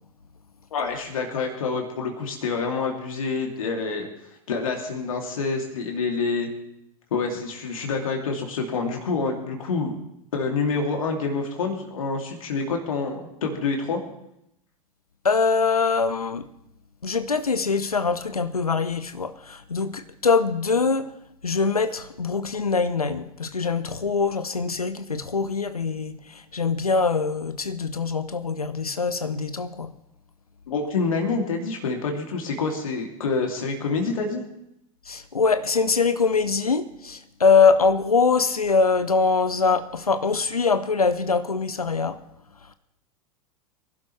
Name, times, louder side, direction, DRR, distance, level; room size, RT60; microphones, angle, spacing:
voice 1, 0.7-4.1 4.5-6.5 7.1-10.0 10.3-14.0 30.7-34.4, left 4 dB, 65° left, 2.6 m, -27 dB
voice 2, 15.2-16.5 17.0-21.1 21.4-29.9 35.1-42.2, left 4 dB, 85° left, 0.7 m, -23 dB
24.0 x 11.5 x 3.2 m
figure-of-eight pair, 90°, 19 cm